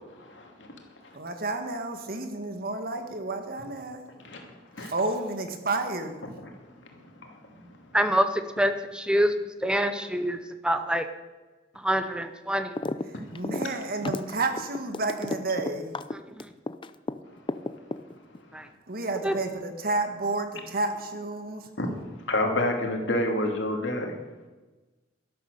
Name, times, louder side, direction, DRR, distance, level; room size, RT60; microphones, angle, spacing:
voice 1, 0.2-0.7 1.0-1.1 4.2-4.9 6.4-6.5 6.9-7.9 21.8-21.9 22.3-24.2, left 1 dB, 85° left, 2 dB, 2.7 m, -30 dB
voice 2, 1.1-4.0 4.8-6.1 13.0-16.0 18.9-21.7, right 2 dB, 55° right, 6 dB, 1.7 m, -31 dB
voice 3, 7.9-8.3 8.6-9.3 9.6-10.4 10.6-11.1 11.8-12.7 18.5-18.6 19.2-19.3, equal, 5° right, 9 dB, 0.7 m, -25 dB
sound 1, 12.8-13.1 13.3-17.1 17.5-18.4, left 2 dB, 30° left, 0.5 m, -32 dB
12.0 x 12.0 x 6.7 m, 1.2 s
head